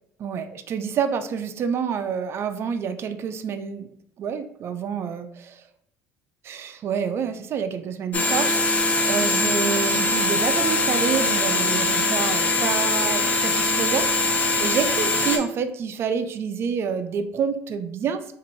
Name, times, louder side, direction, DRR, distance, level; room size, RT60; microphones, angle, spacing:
voice 1, 0.2-3.9 4.2-5.6 6.4-18.4, right 7 dB, 45° right, 9 dB, 0.4 m, -28 dB
sound 1, 8.1-15.4, left 2 dB, 25° left, 0.7 m, -22 dB
2.9 x 2.5 x 3.9 m, 0.68 s
supercardioid pair, 90°, 6 cm